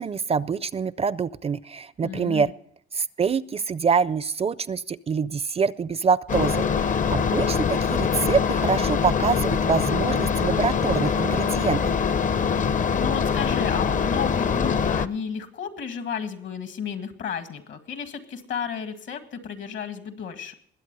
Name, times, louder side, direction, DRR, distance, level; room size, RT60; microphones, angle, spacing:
voice 1, 0.0-2.5 2.9-11.8, right 5 dB, 30° right, 19 dB, 0.4 m, -25 dB
voice 2, 2.0-2.5 7.0-7.5 13.0-20.5, left 7 dB, 70° left, 8 dB, 1.9 m, -33 dB
sound 1, 6.3-15.1, left 6 dB, 40° left, 0.6 m, -23 dB
20.5 x 8.2 x 5.4 m, 0.65 s
cardioid pair, 90°, 20 cm